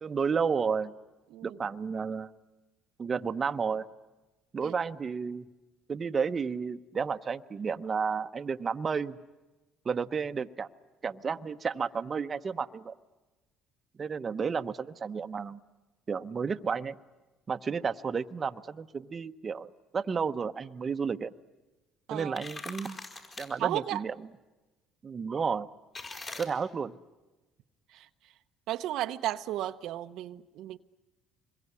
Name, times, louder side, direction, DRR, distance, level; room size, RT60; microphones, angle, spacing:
voice 1, 0.0-0.9 1.4-2.3 3.0-3.9 4.5-5.5 5.9-9.2 9.8-10.7 11.0-12.9 14.0-15.6 16.1-16.9 17.5-21.3 22.1-23.0 23.4-24.1 25.0-25.7 26.4-26.9, right 5 dB, 35° right, 1.0 m, -32 dB
sound 1, 22.2-23.5 26.0-26.5, left 3 dB, 35° left, 5.7 m, -42 dB
voice 2, 23.6-24.0 27.9-28.1 28.7-30.8, right 13 dB, 75° right, 0.8 m, -34 dB
26.0 x 22.0 x 9.7 m
supercardioid pair, 90°, 0 cm